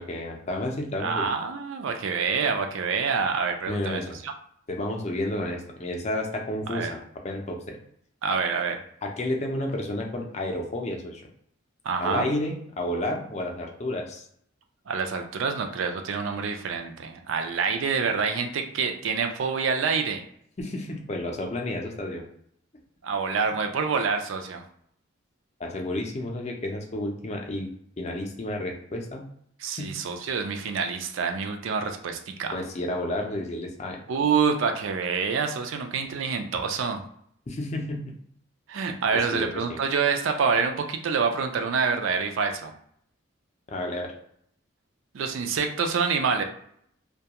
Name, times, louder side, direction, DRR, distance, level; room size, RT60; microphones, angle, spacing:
voice 1, 0.0-1.3 3.7-4.2 4.7-7.0 7.2-7.8 9.0-11.2 12.0-14.2 20.6-22.3 23.5-23.6 25.6-27.7 28.0-29.2 29.8-29.9 32.5-34.0 37.5-38.0 39.1-39.8 43.7-44.1, left 1 dB, 35° left, 2 dB, 0.4 m, -31 dB
voice 2, 1.0-4.3 6.7-6.9 8.2-8.8 11.8-12.3 14.9-20.2 23.0-24.6 29.6-32.6 34.1-37.0 38.7-42.7 45.1-46.4, right 5 dB, 75° right, 5 dB, 0.4 m, -27 dB
2.2 x 2.2 x 2.8 m, 0.68 s
head